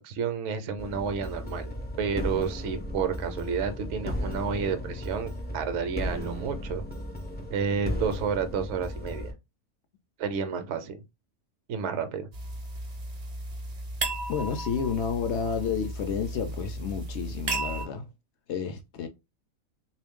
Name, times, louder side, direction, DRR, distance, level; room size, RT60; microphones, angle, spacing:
voice 1, 0.0-1.7 2.0-6.8 7.5-9.3 10.2-11.0 11.7-12.3, right 6 dB, 65° right, 0.9 m, -30 dB
sound 1, 0.8-9.3, equal, 15° left, 0.4 m, -35 dB
sound 2, 12.3-17.9, right 2 dB, 40° right, 0.6 m, -34 dB
voice 2, 14.3-18.0 18.5-19.1, left 6 dB, 65° left, 0.7 m, -30 dB
3.3 x 2.5 x 3.5 m
omnidirectional pair, 1.4 m